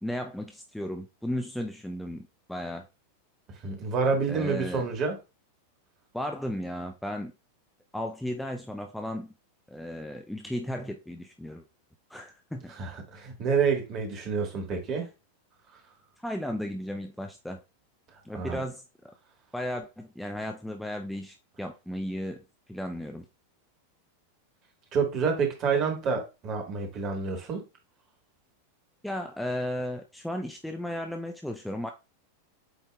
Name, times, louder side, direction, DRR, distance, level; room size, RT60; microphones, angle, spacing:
voice 1, 0.0-2.9 4.3-4.9 6.1-7.3 7.9-9.3 9.7-11.6 12.1-12.7 16.2-17.6 18.2-19.1 19.5-23.3 29.0-31.9, left 1 dB, ahead, 0.4 m, -35 dB
voice 2, 3.6-5.2 12.8-15.1 18.3-18.6 24.9-27.6, right 5 dB, 35° right, 1.4 m, -28 dB
8.0 x 2.7 x 2.3 m
figure-of-eight pair, 90°, 0 cm